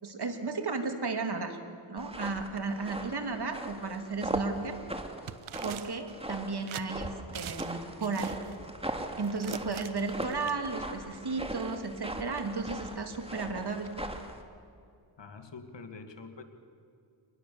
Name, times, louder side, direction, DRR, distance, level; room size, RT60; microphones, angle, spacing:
voice 1, 0.0-1.6 1.9-4.8 5.6-8.4 9.2-13.9, right 4 dB, 55° right, 5 dB, 2.9 m, -34 dB
sound 1, 2.0-14.4, right 1 dB, 10° right, 2.5 m, -39 dB
sound 2, 5.3-6.1 6.7-6.9 7.3-7.8 8.0-8.5 9.2-10.5, right 11 dB, 80° right, 0.9 m, -42 dB
voice 2, 15.2-16.4, left 4 dB, 60° left, 7 dB, 2.3 m, -45 dB
25.0 x 20.5 x 7.1 m, 2.4 s
cardioid pair, 50°, 48 cm